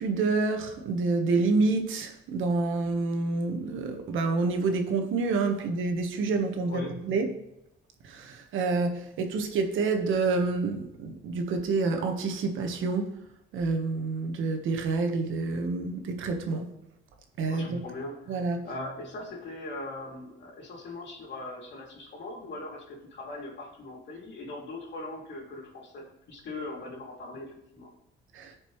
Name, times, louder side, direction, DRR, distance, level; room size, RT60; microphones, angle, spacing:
voice 1, 0.0-7.3 8.0-13.2 13.5-16.7 17.4-17.8 18.3-18.7 28.3-28.6, right 3 dB, 80° right, 1.3 m, -28 dB
voice 2, 6.7-7.0 15.0-15.1 17.5-27.9, left 2 dB, 65° left, 2.8 m, -40 dB
14.0 x 5.3 x 3.1 m
cardioid pair, 90°, 20 cm